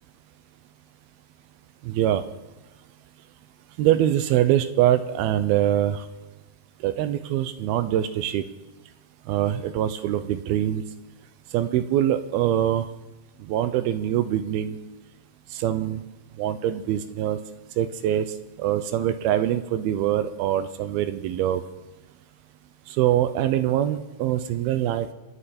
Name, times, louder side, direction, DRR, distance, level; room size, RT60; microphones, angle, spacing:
voice 1, 1.8-2.2 3.8-6.0 6.8-8.4 9.3-10.8 11.5-12.9 13.5-14.8 15.5-16.0 16.4-17.4 17.8-18.3 18.6-21.6 22.9-25.1, right 12 dB, 80° right, 11 dB, 2.4 m, -23 dB
29.0 x 9.8 x 4.3 m, 1.1 s
omnidirectional pair, 4.7 m